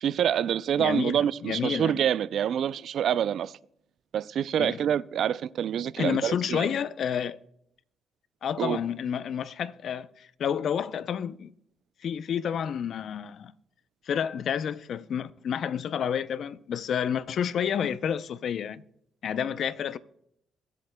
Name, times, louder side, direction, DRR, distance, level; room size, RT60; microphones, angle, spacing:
voice 1, 0.0-3.5 4.1-6.7 8.6-8.8, right 9 dB, 65° right, 0.3 m, -26 dB
voice 2, 0.8-2.0 4.6-4.8 6.0-7.4 8.4-11.5 12.0-13.5 14.1-18.8 19.2-20.0, left 8 dB, 65° left, 0.5 m, -30 dB
22.0 x 8.4 x 2.2 m
cardioid pair, 90°, 0 cm